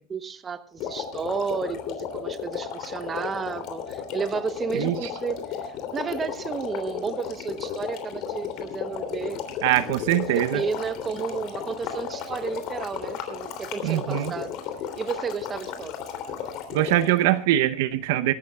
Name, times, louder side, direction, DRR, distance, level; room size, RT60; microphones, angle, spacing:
voice 1, 0.1-9.4 10.1-14.6 14.9-16.0, right 5 dB, 20° right, 1.0 m, -32 dB
sound 1, 0.8-17.2, left 8 dB, 50° left, 3.1 m, -34 dB
voice 2, 9.6-10.6 13.8-14.3 16.7-18.3, right 13 dB, 70° right, 0.8 m, -22 dB
23.5 x 12.0 x 2.4 m
supercardioid pair, 145°, 0 cm